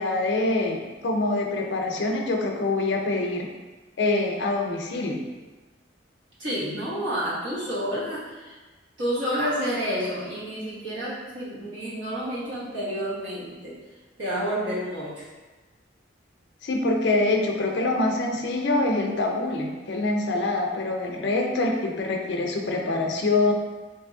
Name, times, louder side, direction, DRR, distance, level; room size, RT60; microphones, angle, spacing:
voice 1, 0.0-3.5 4.0-5.2 16.6-23.5, left 2 dB, 75° left, 2 dB, 0.5 m, -25 dB
voice 2, 6.4-8.6 9.0-13.7 14.2-15.2, equal, 85° right, -8 dB, 1.2 m, -29 dB
2.9 x 2.7 x 3.7 m, 1.3 s
head